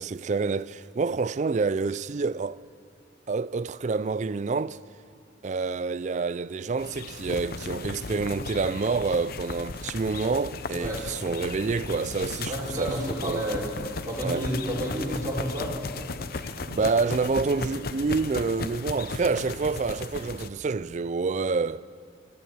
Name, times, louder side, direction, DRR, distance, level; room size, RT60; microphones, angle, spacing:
voice 1, 0.0-2.6 3.3-4.8 5.4-13.0 13.2-13.5 14.2-14.5 16.7-21.8, right 4 dB, 40° right, 0.4 m, -28 dB
sound 1, 6.8-20.5, left 3 dB, 50° left, 0.7 m, -36 dB
voice 2, 12.5-13.6 14.0-15.7, equal, 20° right, 4.8 m, -30 dB
25.5 x 12.0 x 8.4 m
head